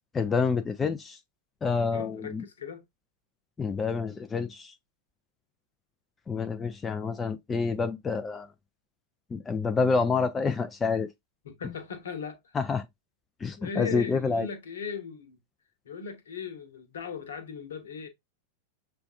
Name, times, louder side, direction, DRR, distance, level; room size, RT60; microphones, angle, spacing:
voice 1, 0.1-1.2 1.6-2.4 3.6-4.7 6.3-8.5 9.3-11.1 12.5-12.9 13.4-14.5, left 5 dB, 15° left, 0.4 m, -28 dB
voice 2, 1.9-2.8 11.4-12.6 13.6-15.4 15.8-18.1, left 5 dB, 65° left, 1.0 m, -38 dB
6.7 x 2.5 x 2.4 m
figure-of-eight pair, 90°, 0 cm